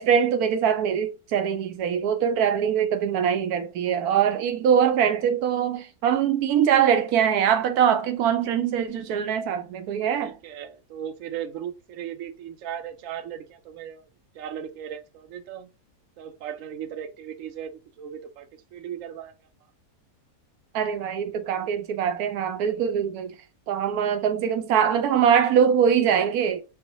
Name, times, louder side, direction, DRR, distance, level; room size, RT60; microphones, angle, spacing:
voice 1, 0.0-10.4 20.7-23.3 23.7-26.6, right 8 dB, 85° right, 1.1 m, -23 dB
voice 2, 10.2-14.0 14.3-15.7 16.2-17.7 18.0-19.3, right 9 dB, 65° right, 1.0 m, -37 dB
4.6 x 2.1 x 3.9 m
omnidirectional pair, 1.5 m